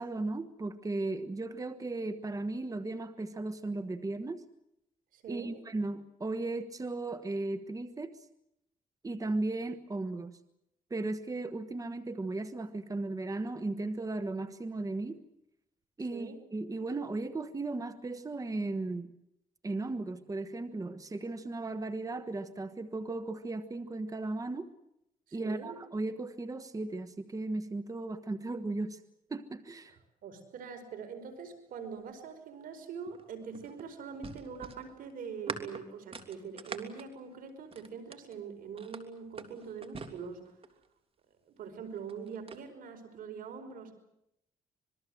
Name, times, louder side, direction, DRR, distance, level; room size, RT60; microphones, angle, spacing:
voice 1, 0.0-4.4 5.3-8.3 9.0-10.4 10.9-15.2 16.0-19.1 19.6-24.7 25.3-29.0 29.3-30.0, right 2 dB, 25° right, 11 dB, 1.4 m, -36 dB
voice 2, 5.1-5.5 16.1-16.4 25.3-25.8 29.9-30.0 30.2-40.5 41.5-43.9, right 6 dB, 80° right, 7 dB, 5.0 m, -43 dB
sound 1, 33.1-38.4 38.8-40.9 41.8-42.6, right 4 dB, 40° right, 3.2 m, -44 dB
26.0 x 22.0 x 7.9 m, 0.81 s
cardioid pair, 85°, 14 cm